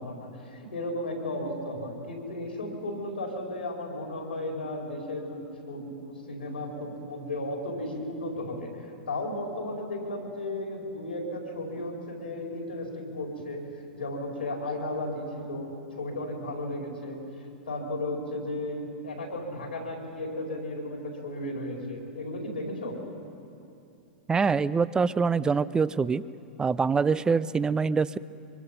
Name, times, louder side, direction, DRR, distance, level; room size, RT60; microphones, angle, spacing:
voice 1, 0.0-13.6 13.9-15.7 16.0-17.2 17.6-23.0, left 1 dB, 85° left, 0 dB, 4.7 m, -34 dB
voice 2, 24.3-26.2 26.6-28.2, right 5 dB, 15° right, 18 dB, 0.5 m, -24 dB
24.0 x 24.0 x 5.4 m, 2.7 s
hypercardioid pair, 105°, 5 cm